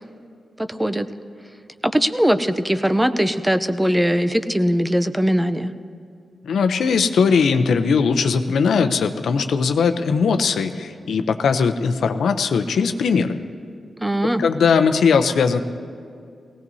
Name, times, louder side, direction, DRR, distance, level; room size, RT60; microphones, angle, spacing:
voice 1, 0.6-1.1 1.8-5.7 14.0-14.4, equal, 10° right, 10 dB, 0.6 m, -20 dB
voice 2, 6.4-13.4 14.4-15.6, left 5 dB, 90° left, 8 dB, 0.6 m, -19 dB
19.0 x 17.5 x 2.7 m, 2.3 s
cardioid pair, 80°, 0 cm